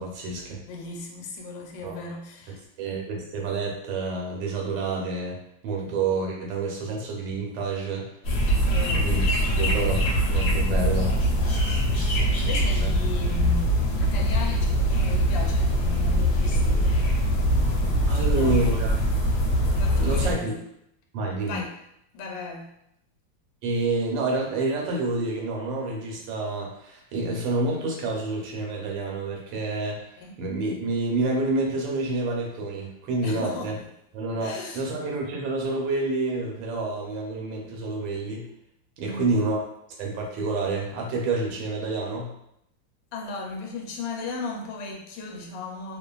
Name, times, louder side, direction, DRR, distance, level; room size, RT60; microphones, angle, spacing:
voice 1, 0.0-0.6 1.8-2.0 2.8-5.4 5.6-8.1 8.9-11.1 12.2-12.4 12.8-12.9 18.1-18.9 19.9-20.5 21.1-21.6 23.6-33.7 34.1-38.5 39.0-39.6 40.0-42.3, right 3 dB, 80° right, -1 dB, 1.3 m, -28 dB
voice 2, 0.6-2.6 2.9-3.0 8.5-9.1 11.6-17.0 18.1-18.6 19.7-20.6 21.5-21.7 22.1-22.7 30.2-30.3 33.2-33.7 34.4-34.9 39.0-39.4 43.1-46.0, left 3 dB, 90° left, 1 dB, 1.3 m, -36 dB
sound 1, 8.2-20.3, equal, 70° left, 1.1 m, -23 dB
2.8 x 2.4 x 2.2 m, 0.77 s
omnidirectional pair, 2.0 m